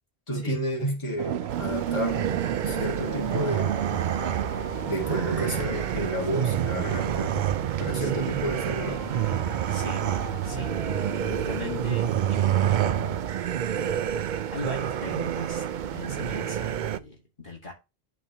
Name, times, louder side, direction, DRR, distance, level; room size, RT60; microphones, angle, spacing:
voice 1, 0.3-2.3 2.6-3.7 4.9-7.4 7.8-9.0, equal, 30° left, 2.3 m, -31 dB
sound 1, 1.2-14.5, right 10 dB, 85° right, 0.8 m, -36 dB
sound 2, 1.5-17.0, right 10 dB, 60° right, 0.6 m, -28 dB
sound 3, 2.1-13.4, left 7 dB, 75° left, 1.0 m, -42 dB
voice 2, 9.7-10.1 10.4-10.7 11.2-13.3 14.5-17.7, left 2 dB, 55° left, 2.1 m, -39 dB
12.5 x 4.4 x 2.9 m
omnidirectional pair, 1.0 m